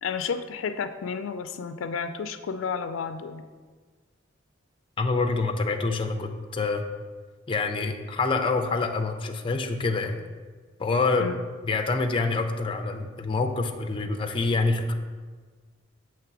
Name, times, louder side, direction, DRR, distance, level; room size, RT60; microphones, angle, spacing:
voice 1, 0.0-3.4 11.2-11.3, left 6 dB, 90° left, 10 dB, 0.4 m, -31 dB
voice 2, 5.0-6.8 7.5-10.2 10.8-11.3 11.6-14.9, left 3 dB, 25° left, 4 dB, 0.4 m, -26 dB
6.8 x 3.1 x 6.0 m, 1.4 s
head